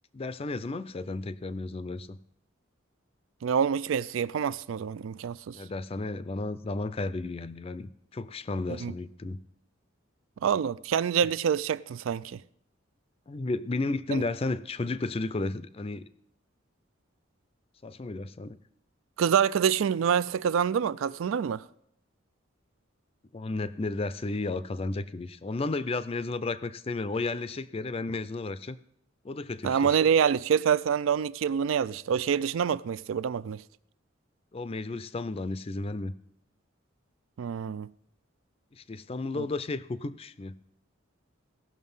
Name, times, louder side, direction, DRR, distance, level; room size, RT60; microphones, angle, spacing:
voice 1, 0.1-2.2 5.5-9.4 13.3-16.0 17.8-18.6 23.3-28.8 29.2-30.0 34.5-36.1 38.7-40.5, left 3 dB, 30° left, 0.4 m, -33 dB
voice 2, 3.4-5.6 8.8-8.9 10.4-12.4 14.1-14.2 19.2-21.6 29.6-33.6 37.4-37.9 39.3-39.4, right 7 dB, 80° right, 0.3 m, -26 dB
16.5 x 6.2 x 5.5 m
head